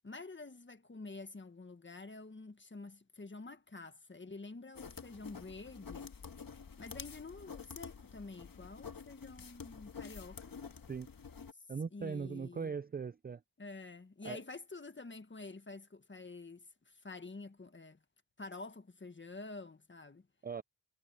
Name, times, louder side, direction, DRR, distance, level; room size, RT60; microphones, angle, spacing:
voice 1, 0.0-6.1 6.8-10.5 11.5-11.6 11.9-12.8 13.6-18.0 18.4-20.3, left 3 dB, 25° left, 1.7 m, -48 dB
sound 1, 4.7-11.5, left 6 dB, 45° left, 1.8 m, -49 dB
voice 2, 11.7-13.4 14.2-14.4 20.4-20.6, right 6 dB, 20° right, 0.4 m, -39 dB
cardioid pair, 70°, 46 cm